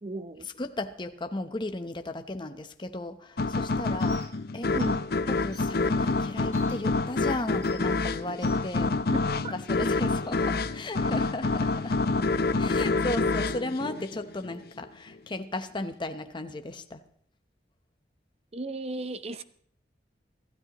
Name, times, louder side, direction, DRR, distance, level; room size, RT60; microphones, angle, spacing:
voice 1, 0.0-0.5 4.7-5.0 9.4-9.5 18.5-19.4, right 2 dB, 35° right, 13 dB, 0.7 m, -35 dB
voice 2, 0.5-4.3 4.5-4.7 5.3-8.9 9.3-12.0 12.6-17.0, left 2 dB, 25° left, 7 dB, 0.9 m, -35 dB
sound 1, 3.4-14.6, left 3 dB, 60° left, 0.6 m, -27 dB
Bird, 4.0-4.3 4.7-4.8 5.5-5.7 6.5-6.7 7.6-7.8 8.4-8.6, equal, 20° right, 4.6 m, -50 dB
25.5 x 13.0 x 3.0 m, 0.64 s
head